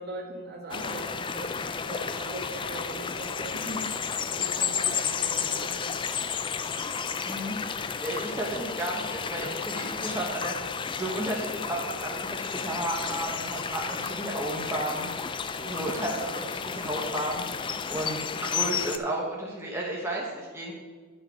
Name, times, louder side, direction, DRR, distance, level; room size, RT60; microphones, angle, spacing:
voice 1, 0.0-6.3 8.2-8.5 15.6-15.9, right 1 dB, 50° right, -1 dB, 2.0 m, -40 dB
sound 1, 0.7-19.0, left 6 dB, 25° left, 0.3 m, -32 dB
voice 2, 7.3-10.5 10.9-15.4 15.6-20.7, right 1 dB, 10° right, -3 dB, 1.1 m, -33 dB
10.5 x 6.4 x 4.8 m, 1.5 s
head